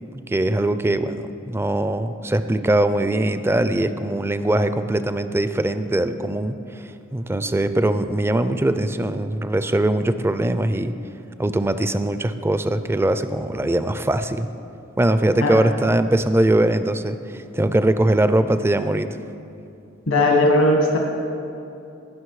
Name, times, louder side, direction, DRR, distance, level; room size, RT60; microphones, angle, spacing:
voice 1, 0.3-6.6 7.1-11.0 11.4-14.5 15.0-19.2, right 1 dB, 10° right, 11 dB, 0.4 m, -21 dB
voice 2, 20.1-21.0, left 1 dB, 85° left, 0 dB, 1.4 m, -17 dB
19.0 x 6.3 x 4.8 m, 2.7 s
head